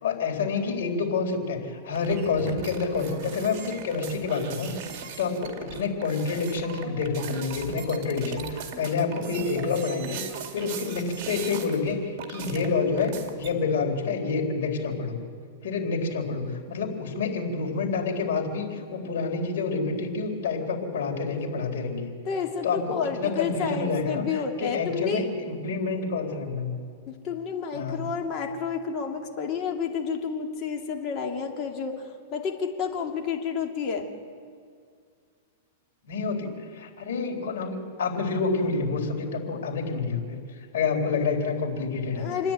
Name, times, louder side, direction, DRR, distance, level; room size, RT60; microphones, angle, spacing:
voice 1, 0.0-4.7 5.2-15.2 15.6-22.1 22.6-26.8 27.7-28.1 36.1-40.4 40.7-42.3, left 4 dB, 70° left, 1 dB, 3.9 m, -28 dB
sound 1, 1.9-11.9 12.2-13.6, right 6 dB, 45° right, 2.3 m, -39 dB
voice 2, 22.2-25.2 27.1-34.1 42.1-42.5, left 6 dB, 35° left, 2 dB, 2.6 m, -30 dB
28.0 x 10.5 x 9.0 m, 2.1 s
hypercardioid pair, 145°, 0 cm